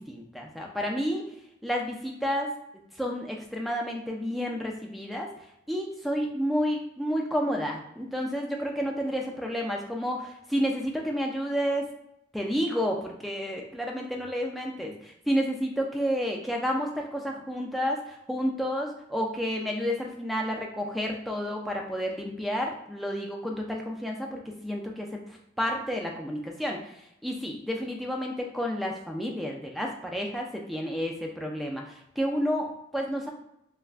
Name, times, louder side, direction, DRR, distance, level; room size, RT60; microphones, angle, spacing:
voice 1, 0.0-1.3 1.6-2.5 3.0-5.3 5.7-11.9 12.3-25.2 25.6-26.8 27.2-33.3, equal, ahead, -1 dB, 0.3 m, -30 dB
3.3 x 2.1 x 2.4 m, 0.81 s
head